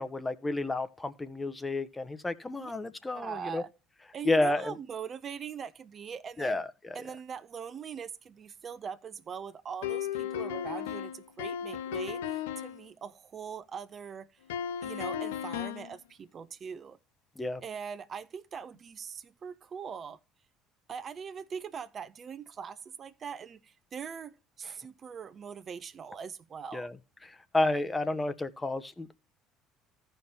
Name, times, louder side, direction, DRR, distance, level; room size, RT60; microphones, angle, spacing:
voice 1, 0.0-3.6 4.2-4.7 6.4-7.0 17.4-17.6 26.7-26.9 27.5-29.1, left 2 dB, 15° left, 0.9 m, -31 dB
voice 2, 3.1-3.7 4.1-6.6 6.9-14.3 14.8-17.0 17.6-20.2 20.9-26.9, right 7 dB, 40° right, 0.6 m, -42 dB
sound 1, 9.8-12.8 14.5-15.9, left 9 dB, 75° left, 0.5 m, -35 dB
15.5 x 5.7 x 2.8 m
figure-of-eight pair, 55°, 0 cm